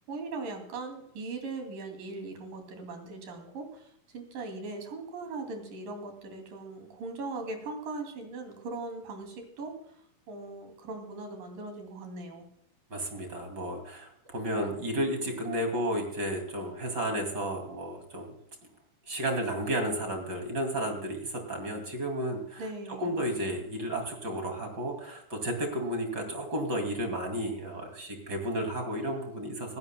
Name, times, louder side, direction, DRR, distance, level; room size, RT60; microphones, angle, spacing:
voice 1, 0.1-12.5 22.6-23.2, right 3 dB, 80° right, 4 dB, 4.4 m, -40 dB
voice 2, 12.9-18.3 19.1-22.6 23.0-29.8, right 1 dB, 35° right, 4 dB, 2.9 m, -32 dB
19.0 x 15.5 x 2.3 m, 0.69 s
omnidirectional pair, 3.8 m